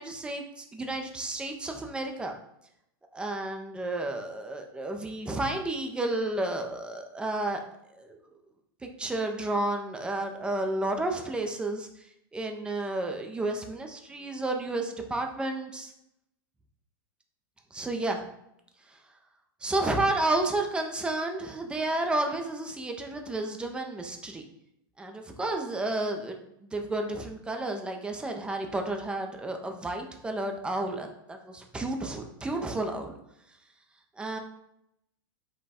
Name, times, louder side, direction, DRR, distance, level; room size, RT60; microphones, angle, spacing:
voice 1, 0.0-2.3 3.1-7.6 7.9-8.2 9.0-15.9 17.7-18.2 18.9-19.0 19.6-24.5 25.0-33.1 34.2-34.4, right 2 dB, 10° right, 3 dB, 0.5 m, -31 dB
5.1 x 2.2 x 4.2 m, 0.80 s
supercardioid pair, 135°, 12 cm